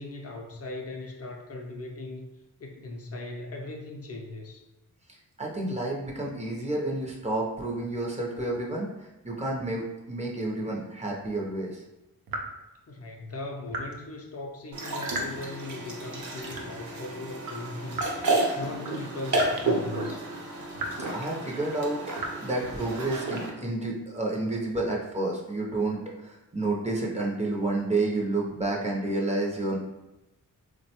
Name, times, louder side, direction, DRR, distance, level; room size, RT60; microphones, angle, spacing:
voice 1, 0.0-2.3 2.6-4.6 12.9-20.2, left 2 dB, 45° left, 1 dB, 0.4 m, -39 dB
voice 2, 5.4-11.8 21.1-29.8, right 2 dB, 20° right, -3 dB, 0.5 m, -30 dB
sound 1, 12.3-12.6 13.7-14.0 15.1-15.5 16.5-16.9 17.9-18.3 19.3-19.7 20.1-20.2 20.7-21.1 22.2-22.3, right 2 dB, 90° right, 0.5 m, -35 dB
sound 2, 14.7-23.5, right 2 dB, 55° right, 0.7 m, -31 dB
3.6 x 2.1 x 2.8 m, 1.0 s
wide cardioid pair, 125°, 34 cm